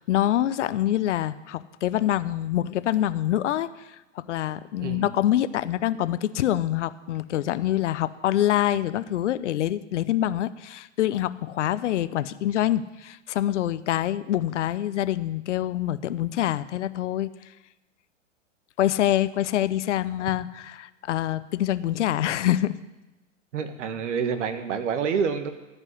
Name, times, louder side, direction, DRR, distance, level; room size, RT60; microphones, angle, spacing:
voice 1, 0.0-3.7 4.3-17.3 18.8-22.8, left 12 dB, 65° left, 15 dB, 0.8 m, -25 dB
voice 2, 23.5-25.5, right 6 dB, 65° right, 9 dB, 1.6 m, -27 dB
14.5 x 5.4 x 9.7 m, 1.0 s
hypercardioid pair, 115°, 39 cm